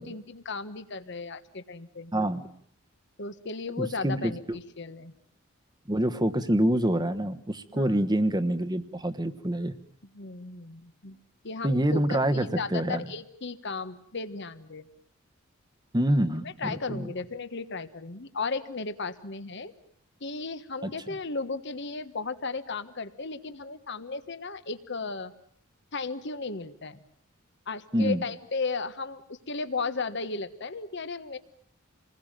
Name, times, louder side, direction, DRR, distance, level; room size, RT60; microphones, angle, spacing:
voice 1, 0.0-2.1 3.2-5.1 7.7-8.1 10.1-11.2 11.4-14.9 16.4-19.7 20.2-25.3 25.9-27.0 27.7-31.4, left 4 dB, 55° left, 11 dB, 1.4 m, -35 dB
voice 2, 2.1-2.5 3.8-4.6 5.9-9.7 11.6-13.0 15.9-17.1 20.8-20.9 27.9-28.2, right 1 dB, 20° right, 10 dB, 1.3 m, -26 dB
28.0 x 20.5 x 9.0 m, 0.64 s
head